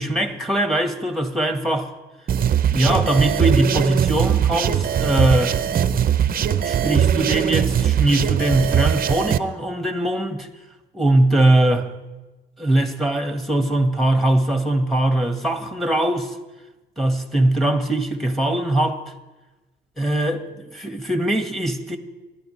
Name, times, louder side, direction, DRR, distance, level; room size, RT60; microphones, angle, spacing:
voice 1, 0.0-1.9 2.7-5.6 6.6-10.5 10.9-11.9 12.6-16.3 17.0-19.0 20.0-22.0, right 1 dB, ahead, 1.6 m, -21 dB
sound 1, 2.3-9.4, right 9 dB, 45° right, 0.6 m, -20 dB
26.0 x 12.0 x 3.3 m
cardioid pair, 90°, 20 cm